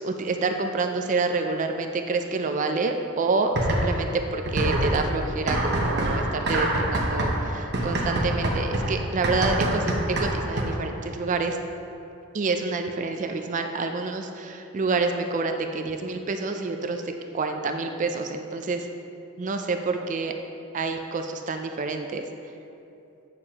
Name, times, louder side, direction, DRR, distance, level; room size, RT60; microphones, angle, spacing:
voice 1, 0.0-9.9 10.2-11.6 12.3-17.0 17.3-18.9 19.4-20.3 20.7-22.2, right 3 dB, 35° right, 5 dB, 0.4 m, -28 dB
sound 1, 3.5-4.1 4.5-10.9, right 1 dB, 50° right, 0.9 m, -25 dB
8.5 x 6.5 x 2.9 m, 2.7 s
head